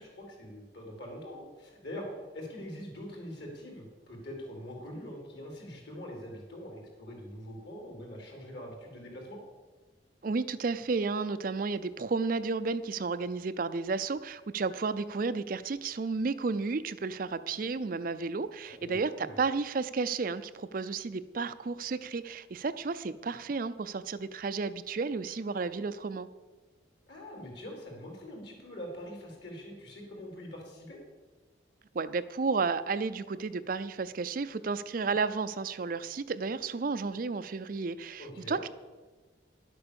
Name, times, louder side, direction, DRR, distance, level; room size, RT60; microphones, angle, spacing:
voice 1, 0.0-2.1 2.3-9.4 18.6-19.4 27.1-31.0 38.2-38.6, equal, 65° left, 0 dB, 3.9 m, -44 dB
voice 2, 10.2-26.3 31.9-38.7, right 4 dB, 50° right, 12 dB, 0.4 m, -32 dB
11.0 x 8.1 x 6.9 m, 1.3 s
head